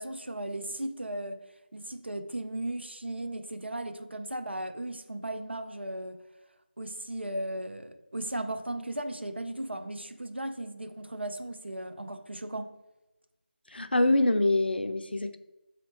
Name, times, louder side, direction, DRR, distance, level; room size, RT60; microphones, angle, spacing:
voice 1, 0.0-1.4 1.7-6.2 6.8-12.7, right 1 dB, 90° right, 0.5 m, -36 dB
voice 2, 13.7-15.4, left 2 dB, 65° left, 0.4 m, -25 dB
4.1 x 2.7 x 3.0 m
figure-of-eight pair, 165°, 6 cm